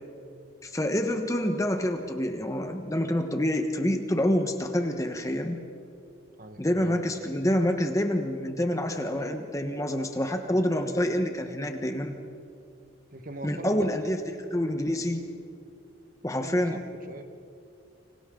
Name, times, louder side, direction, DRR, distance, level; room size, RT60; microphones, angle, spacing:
voice 1, 0.6-5.6 6.6-12.2 13.4-15.2 16.2-16.8, left 1 dB, 15° left, 5 dB, 1.2 m, -27 dB
voice 2, 6.4-7.2 13.1-14.1 16.4-17.2, right 2 dB, 45° right, 7 dB, 1.3 m, -42 dB
29.5 x 26.0 x 3.9 m, 2.4 s
head